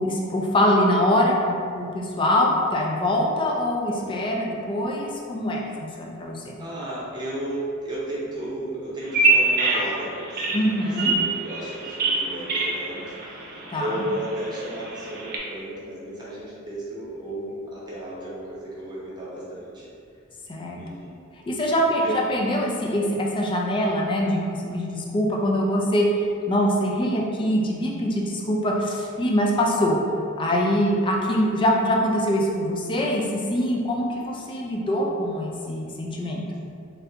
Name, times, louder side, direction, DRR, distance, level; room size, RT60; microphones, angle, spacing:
voice 1, 0.0-6.5 10.5-11.1 13.7-14.0 20.5-20.8 21.5-30.0 30.4-36.4, equal, 25° left, -1 dB, 0.4 m, -23 dB
voice 2, 3.9-4.5 6.6-10.6 10.8-19.9 20.8-21.2 21.9-22.2, right 1 dB, 20° right, -8 dB, 0.8 m, -34 dB
Bird vocalization bird call bird song, 9.0-15.4, right 3 dB, 45° right, 0.5 m, -26 dB
3.2 x 2.5 x 2.7 m, 2.4 s
head